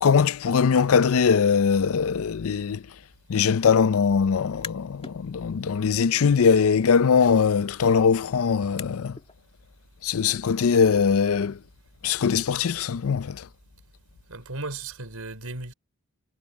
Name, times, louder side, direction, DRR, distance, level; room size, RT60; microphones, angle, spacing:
voice 1, 0.0-2.8 3.3-9.2 10.0-11.6 12.0-13.5, left 6 dB, 70° left, 0.5 m, -21 dB
sound 1, 4.5-5.2 5.6-9.3, left 5 dB, 25° left, 2.0 m, -45 dB
voice 2, 14.3-15.7, right 2 dB, 80° right, 4.3 m, -35 dB
head